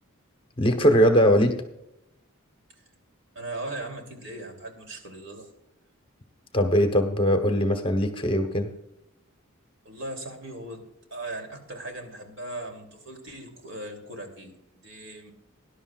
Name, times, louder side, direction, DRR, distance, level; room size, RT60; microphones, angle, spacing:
voice 1, 0.6-1.6 6.5-8.7, equal, 25° left, 6 dB, 1.1 m, -21 dB
voice 2, 3.3-5.5 9.8-15.3, right 2 dB, 60° right, 3 dB, 3.0 m, -38 dB
19.0 x 11.5 x 2.4 m, 0.83 s
head